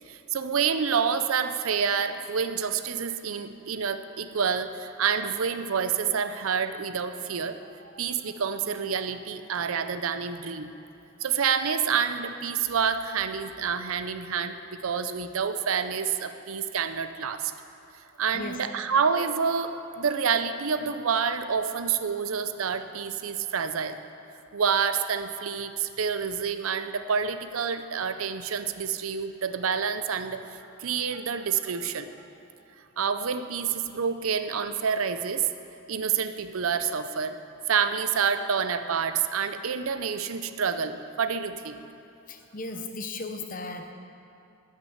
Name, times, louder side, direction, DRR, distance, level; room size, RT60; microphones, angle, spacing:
voice 1, 0.1-10.8 11.2-17.5 18.2-24.0 24.5-32.1 33.0-35.5 35.9-37.4 37.7-41.8, right 6 dB, 80° right, 10 dB, 0.6 m, -28 dB
voice 2, 42.3-43.9, left 3 dB, 40° left, 5 dB, 0.8 m, -36 dB
12.0 x 6.2 x 9.3 m, 2.6 s
head